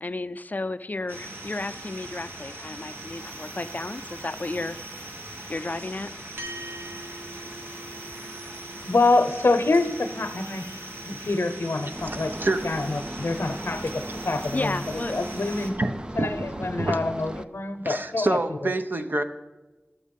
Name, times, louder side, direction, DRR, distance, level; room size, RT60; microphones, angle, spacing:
voice 1, 0.0-4.8 5.5-6.2 8.8-8.9 14.5-15.2, left 2 dB, 45° left, 12 dB, 0.4 m, -33 dB
sound 1, 1.1-15.7, right 1 dB, 70° right, 1.5 m, -40 dB
sound 2, 6.4-15.0, right 1 dB, 90° right, 1.1 m, -46 dB
voice 2, 8.8-10.7 11.1-14.8 15.1-15.8 16.1-18.7, left 3 dB, 85° left, 9 dB, 0.7 m, -26 dB
sound 3, 11.9-17.5, right 1 dB, 20° right, 0.4 m, -37 dB
voice 3, 15.8-16.3 16.8-17.0 17.8-19.2, right 2 dB, 55° right, 8 dB, 0.7 m, -26 dB
12.0 x 7.3 x 5.3 m, 1.2 s
wide cardioid pair, 60°, 4 cm